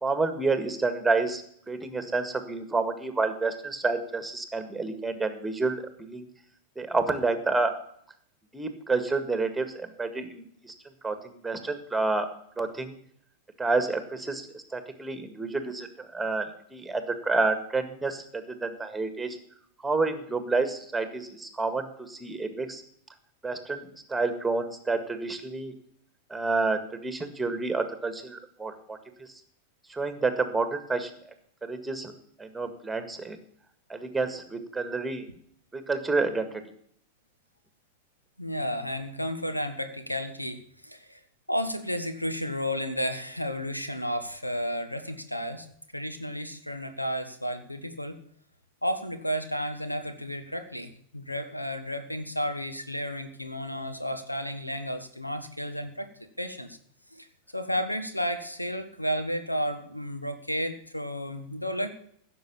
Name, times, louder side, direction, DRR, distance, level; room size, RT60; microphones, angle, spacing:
voice 1, 0.0-6.3 6.8-7.7 8.5-10.7 11.0-12.3 12.6-13.0 13.6-19.4 19.8-22.8 23.4-25.7 26.3-29.3 29.9-31.1 31.6-32.1 32.4-33.4 33.9-35.3 35.7-36.6, right 3 dB, 5° right, 8 dB, 1.8 m, -29 dB
voice 2, 38.4-41.2 41.5-45.7 45.9-48.2 48.8-56.1 56.4-56.8 57.1-57.3 57.5-61.9, equal, 90° left, 9 dB, 1.3 m, -32 dB
15.5 x 6.9 x 7.0 m, 0.64 s
figure-of-eight pair, 90°, 0 cm